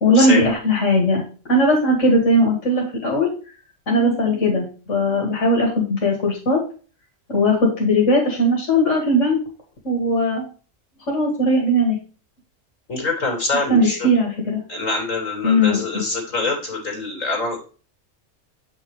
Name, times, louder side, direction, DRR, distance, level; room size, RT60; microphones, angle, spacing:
voice 1, 0.0-1.2 1.5-3.3 3.9-6.6 7.3-9.4 9.8-10.4 11.1-12.0 13.5-14.6 15.4-16.0, left 1 dB, 70° left, -2 dB, 2.4 m, -18 dB
voice 2, 12.9-14.1 14.7-17.6, left 3 dB, 90° left, 2 dB, 3.3 m, -24 dB
7.9 x 5.9 x 3.1 m, 0.37 s
omnidirectional pair, 1.3 m